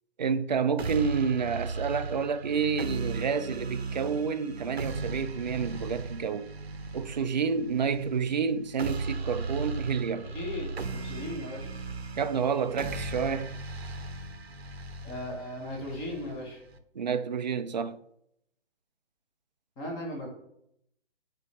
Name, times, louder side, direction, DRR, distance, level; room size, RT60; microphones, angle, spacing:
voice 1, 0.2-6.5 6.9-10.3 12.2-13.5 17.0-18.0, right 6 dB, 45° right, 0.4 m, -29 dB
sound 1, 0.8-16.8, right 3 dB, 70° right, 0.8 m, -37 dB
voice 2, 10.2-11.7 15.0-16.6 19.8-20.3, left 1 dB, 10° left, 1.1 m, -37 dB
8.1 x 4.2 x 3.2 m
figure-of-eight pair, 140°, 33 cm